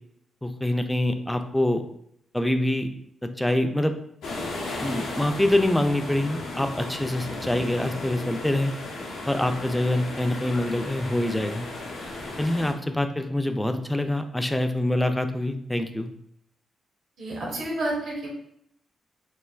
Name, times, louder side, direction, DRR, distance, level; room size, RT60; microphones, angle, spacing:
voice 1, 0.4-1.8 2.3-2.9 3.2-3.9 4.8-8.7 9.3-11.7 12.4-16.1, left 1 dB, 10° left, 7 dB, 0.3 m, -25 dB
sound 1, 4.2-12.7, left 2 dB, 80° left, 0.5 m, -35 dB
voice 2, 17.2-18.3, right 1 dB, 70° right, -2 dB, 0.9 m, -30 dB
3.2 x 2.1 x 2.3 m, 0.74 s
supercardioid pair, 45°, 0 cm